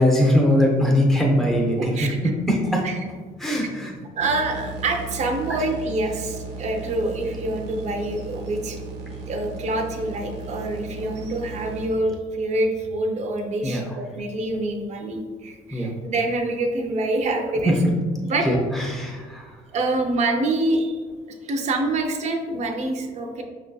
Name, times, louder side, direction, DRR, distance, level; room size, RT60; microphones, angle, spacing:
voice 1, 0.0-2.8 3.4-3.9 5.5-5.6 13.6-13.8 15.7-15.9 17.6-17.7 18.5-19.4, equal, ahead, -2 dB, 0.6 m, -21 dB
voice 2, 1.8-2.2 2.8-3.0 4.1-8.8 9.3-17.8 18.2-18.5 19.7-21.0 21.4-23.4, right 2 dB, 40° right, 3 dB, 0.5 m, -26 dB
sound 1, 4.2-11.9, right 3 dB, 85° right, 0.6 m, -36 dB
5.3 x 2.6 x 2.2 m, 1.5 s
cardioid pair, 110°, 17 cm